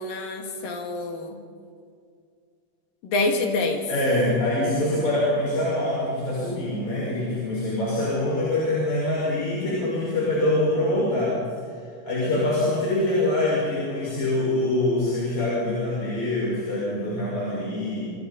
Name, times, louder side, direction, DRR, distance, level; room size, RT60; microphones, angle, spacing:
voice 1, 0.0-1.4 3.0-3.8, left 2 dB, 70° left, 2 dB, 3.6 m, -26 dB
voice 2, 3.9-11.4 12.0-18.1, left 1 dB, 50° left, -7 dB, 6.8 m, -24 dB
27.5 x 26.0 x 4.2 m, 2.2 s
omnidirectional pair, 4.2 m